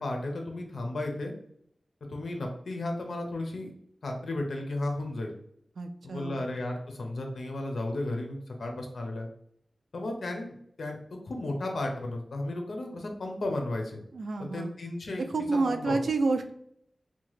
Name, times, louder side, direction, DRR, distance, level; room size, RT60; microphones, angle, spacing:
voice 1, 0.0-1.3 2.1-3.7 4.0-5.3 6.0-9.3 9.9-14.0 14.4-15.2 15.7-16.0, left 2 dB, 85° left, 2 dB, 0.5 m, -34 dB
voice 2, 5.8-6.4 14.1-14.7 15.3-16.5, right 3 dB, 85° right, 7 dB, 0.3 m, -29 dB
2.8 x 2.2 x 3.0 m, 0.69 s
wide cardioid pair, 85°, 0 cm